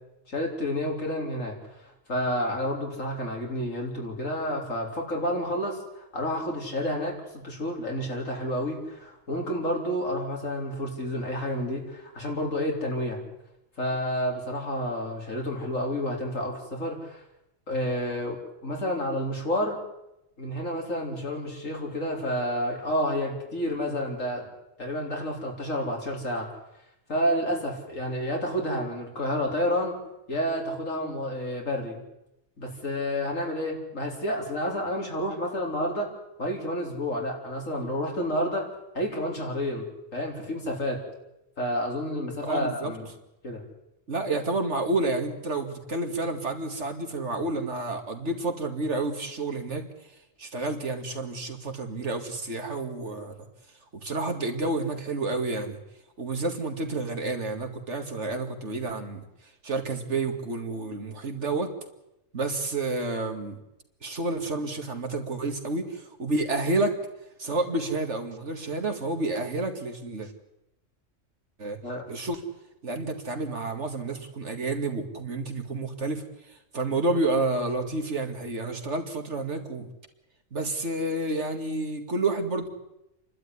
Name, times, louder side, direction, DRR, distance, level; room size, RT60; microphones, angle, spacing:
voice 1, 0.3-13.2 13.8-17.2 17.7-19.8 20.4-24.5 24.8-26.5 27.1-30.0 30.3-32.0 32.6-36.1 36.4-38.7 38.9-41.0 41.6-43.1 43.4-43.6 71.8-72.1, equal, 85° left, 0 dB, 4.7 m, -30 dB
voice 2, 42.4-42.9 44.1-49.8 50.4-53.5 53.9-55.8 56.2-59.3 59.6-61.7 62.3-63.6 64.0-67.0 67.4-70.3 71.6-71.8 72.1-72.4 72.8-76.2 76.5-79.9 80.5-82.7, right 2 dB, 65° right, 5 dB, 2.5 m, -30 dB
29.0 x 12.0 x 9.8 m, 0.89 s
omnidirectional pair, 1.3 m